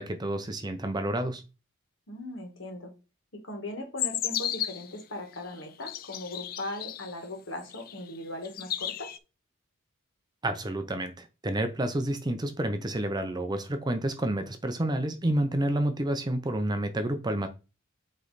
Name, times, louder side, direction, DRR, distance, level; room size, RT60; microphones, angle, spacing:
voice 1, 0.0-1.4 10.4-17.5, right 1 dB, 20° right, 0.5 m, -29 dB
voice 2, 2.1-2.9 3.3-9.1, left 1 dB, 60° left, 1.6 m, -39 dB
sound 1, 4.0-4.9 5.6-7.1 7.7-8.2 8.4-9.2, left 11 dB, 45° left, 0.3 m, -33 dB
8.1 x 3.2 x 4.0 m
head